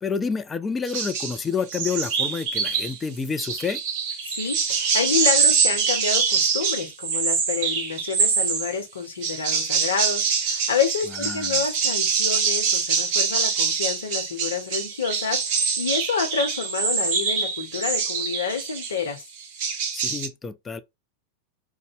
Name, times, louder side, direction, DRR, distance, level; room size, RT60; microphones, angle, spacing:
voice 1, 0.0-3.8 11.2-11.6 19.9-20.8, left 5 dB, 15° left, 0.4 m, -29 dB
sound 1, 0.9-1.4 1.7-3.0 3.4-8.8 9.2-19.0 19.4-20.3, right 6 dB, 45° right, 0.9 m, -24 dB
voice 2, 4.3-19.2, left 6 dB, 65° left, 0.9 m, -28 dB
3.9 x 2.1 x 3.4 m
figure-of-eight pair, 90°, 0 cm